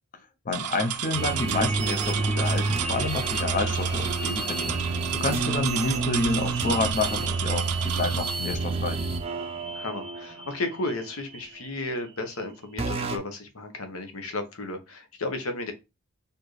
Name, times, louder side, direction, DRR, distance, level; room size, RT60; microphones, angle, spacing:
voice 1, 0.5-9.0, left 3 dB, 35° left, 0.5 m, -29 dB
sound 1, 0.5-8.3, right 10 dB, 90° right, 0.5 m, -33 dB
sound 2, 1.1-11.8 12.8-13.2, right 3 dB, 25° right, 0.4 m, -29 dB
voice 2, 9.7-15.7, left 2 dB, 70° left, 0.9 m, -33 dB
4.3 x 2.6 x 3.1 m
head